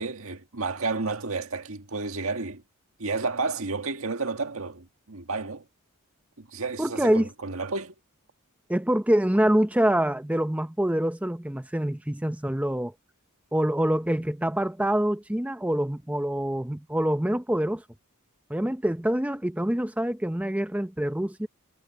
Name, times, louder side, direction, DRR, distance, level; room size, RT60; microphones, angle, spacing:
voice 1, 0.0-2.6 3.0-5.6 6.4-7.9, right 3 dB, 80° right, 1.7 m, -31 dB
voice 2, 6.8-7.3 8.7-12.9 13.5-17.8 18.5-21.5, right 1 dB, 5° right, 0.7 m, -25 dB
head